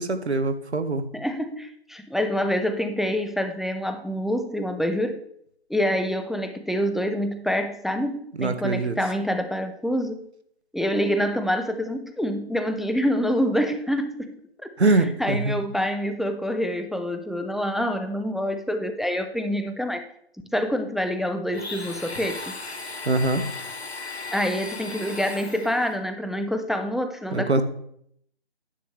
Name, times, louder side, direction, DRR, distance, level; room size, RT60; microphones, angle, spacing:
voice 1, 0.0-1.0 8.4-9.0 14.8-15.5 23.1-23.4 27.3-27.6, right 2 dB, 85° right, 10 dB, 1.1 m, -23 dB
voice 2, 1.1-5.2 5.7-10.3 10.7-14.7 15.0-20.0 20.5-22.5 24.3-27.6, equal, ahead, 7 dB, 0.3 m, -26 dB
Domestic sounds home sounds, 21.5-26.0, left 3 dB, 75° left, 1.6 m, -36 dB
9.8 x 8.3 x 3.3 m, 0.69 s
figure-of-eight pair, 165°, 32 cm